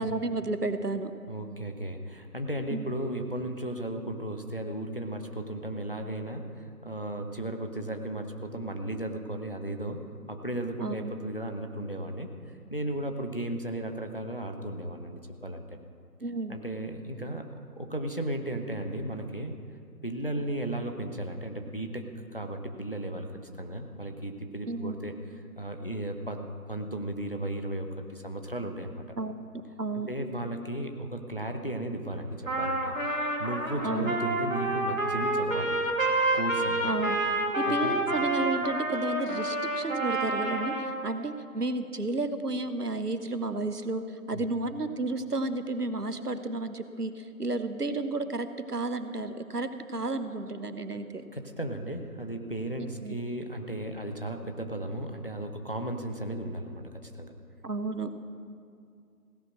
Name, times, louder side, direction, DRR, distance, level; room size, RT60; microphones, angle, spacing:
voice 1, 0.0-1.1 2.7-2.9 10.8-11.1 16.2-16.6 24.7-25.0 29.2-30.2 33.8-34.1 36.8-37.2 37.6-51.2 52.8-53.2 57.6-58.1, right 2 dB, 80° right, 10 dB, 1.2 m, -32 dB
voice 2, 1.3-12.3 12.7-15.8 16.5-19.5 20.0-22.0 22.3-23.3 23.6-25.1 25.6-29.0 30.1-32.9 33.4-35.9 36.3-36.9 37.6-37.9 44.3-44.4 51.3-57.3, right 1 dB, 35° left, 5 dB, 0.9 m, -35 dB
Trumpet, 32.5-41.0, right 1 dB, 55° right, 2.0 m, -29 dB
16.5 x 10.5 x 6.3 m, 2.4 s
figure-of-eight pair, 170°, 46 cm